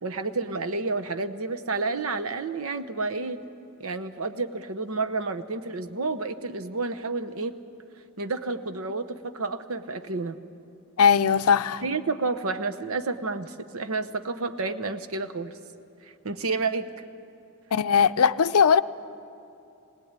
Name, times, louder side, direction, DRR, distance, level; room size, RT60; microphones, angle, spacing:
voice 1, 0.0-3.4 3.8-7.5 8.2-10.4 11.8-15.5 16.2-16.9, right 3 dB, 70° right, 1.0 m, -30 dB
voice 2, 11.0-11.8 17.7-18.8, left 6 dB, 80° left, 0.5 m, -19 dB
21.0 x 19.0 x 8.9 m
head